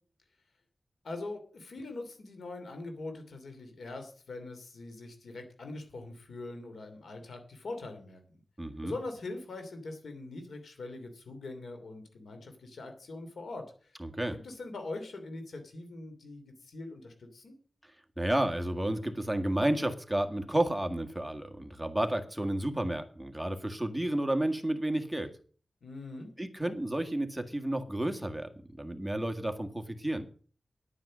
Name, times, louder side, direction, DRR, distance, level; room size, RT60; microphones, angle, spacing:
voice 1, 1.0-8.4 8.8-13.9 14.3-17.6 25.8-26.3, left 2 dB, 85° left, 6 dB, 2.7 m, -42 dB
voice 2, 8.6-8.9 14.0-14.4 18.2-25.3 26.4-30.3, right 1 dB, 5° right, 5 dB, 1.8 m, -31 dB
9.8 x 9.2 x 6.3 m, 0.42 s
cardioid pair, 65°, 0 cm